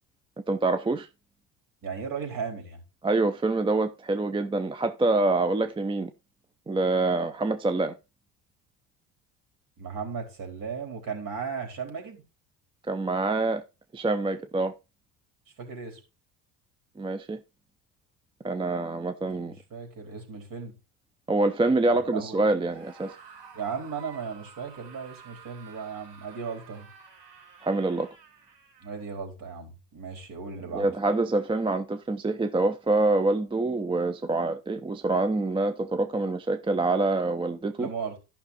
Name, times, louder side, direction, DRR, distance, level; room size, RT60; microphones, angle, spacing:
voice 1, 0.5-1.1 3.0-6.1 6.7-7.9 12.9-13.6 13.9-14.7 17.0-17.4 18.4-19.5 21.3-23.1 27.6-28.1 30.7-37.9, right 2 dB, 10° right, 0.5 m, -26 dB
voice 2, 1.8-2.8 9.8-12.2 15.6-16.0 19.4-20.7 21.9-22.5 23.5-26.9 28.8-30.9 37.8-38.2, right 6 dB, 45° right, 4.2 m, -36 dB
Screaming, 22.7-29.1, right 6 dB, 60° right, 4.6 m, -51 dB
11.5 x 6.0 x 4.1 m
supercardioid pair, 95°, 46 cm